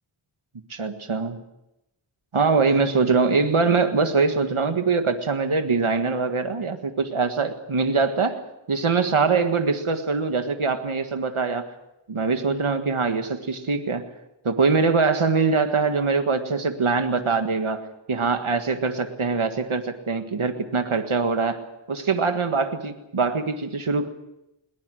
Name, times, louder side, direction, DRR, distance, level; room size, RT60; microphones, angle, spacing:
voice 1, 0.7-1.4 2.3-8.4 8.7-11.7 12.1-14.0 14.4-17.8 18.1-21.6 21.9-24.1, right 4 dB, 85° right, 6 dB, 1.8 m, -23 dB
21.5 x 20.0 x 7.8 m, 0.89 s
wide cardioid pair, 45°, 48 cm